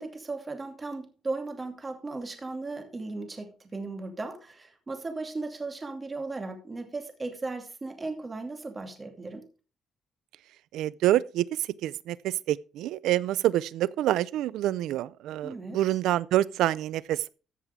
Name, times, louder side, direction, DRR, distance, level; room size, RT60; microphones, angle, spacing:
voice 1, 0.0-9.4 15.4-15.8, right 3 dB, 25° right, 2.5 m, -36 dB
voice 2, 10.7-17.3, right 13 dB, 90° right, 0.4 m, -27 dB
14.5 x 7.1 x 3.6 m
cardioid pair, 90°, 0 cm